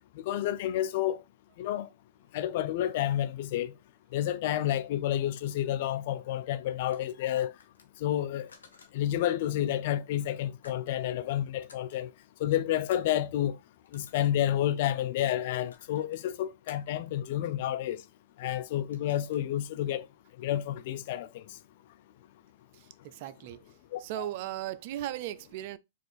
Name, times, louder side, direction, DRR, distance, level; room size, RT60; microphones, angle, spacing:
voice 1, 0.2-1.2 1.6-1.9 2.3-3.7 4.1-7.5 8.0-8.5 8.9-12.1 12.4-13.6 13.9-18.0 18.4-20.0 20.4-21.4 23.9-24.3, left 12 dB, 55° left, 0.4 m, -30 dB
sound 1, 5.4-5.5 5.8-6.5 6.8-7.1 7.4-8.9 9.4-9.6 10.1-10.7 11.1-11.4 11.7-11.8 12.5-12.6 12.7-13.2 13.7-14.5 15.4-16.2 16.7-17.0 18.3-18.5 18.8-19.5, left 4 dB, 85° left, 0.8 m, -57 dB
voice 2, 22.7-23.6 24.0-25.8, right 13 dB, 50° right, 0.3 m, -37 dB
4.7 x 2.4 x 2.4 m
hypercardioid pair, 110°, 0 cm